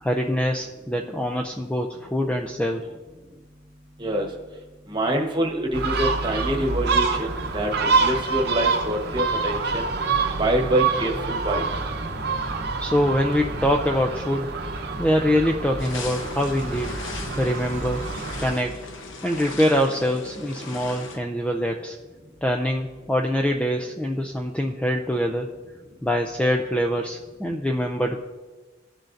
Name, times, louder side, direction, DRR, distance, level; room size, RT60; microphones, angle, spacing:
voice 1, 0.0-2.9 12.8-14.6 15.0-16.9 17.4-18.0 18.4-18.8 19.2-22.0 22.4-25.5 26.0-28.2, equal, 5° left, 2 dB, 0.4 m, -24 dB
voice 2, 4.9-7.7 8.0-9.9 10.4-11.6, right 1 dB, 25° right, 1 dB, 1.2 m, -25 dB
Gull seagull, 5.7-18.6, right 4 dB, 60° right, 0.9 m, -27 dB
sound 1, 15.8-21.2, left 3 dB, 80° left, 0.9 m, -38 dB
16.5 x 6.4 x 2.6 m, 1.3 s
head